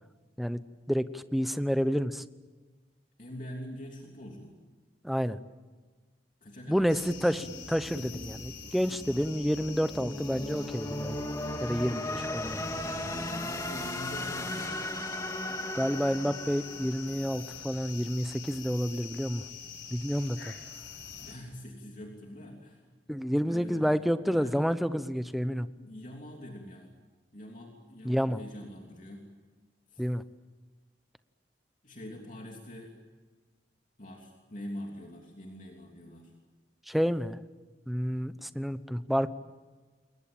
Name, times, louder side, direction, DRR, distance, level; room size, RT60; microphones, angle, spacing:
voice 1, 0.9-2.2 5.0-5.4 6.7-11.2 11.6-12.6 15.7-19.4 19.9-20.5 23.1-25.7 28.0-28.4 30.0-30.2 36.9-37.4 37.9-39.3, equal, ahead, 12 dB, 0.8 m, -29 dB
voice 2, 3.2-4.6 6.4-6.9 13.3-14.8 21.2-22.8 23.4-24.7 25.8-26.9 27.3-29.3 29.9-30.0 31.8-32.9 34.0-36.3, equal, 45° left, 0 dB, 3.1 m, -44 dB
sound 1, 6.7-17.8, left 1 dB, 20° left, 2.0 m, -38 dB
sound 2, 6.9-21.3, left 5 dB, 80° left, 4.7 m, -44 dB
28.5 x 22.0 x 8.9 m, 1.4 s
head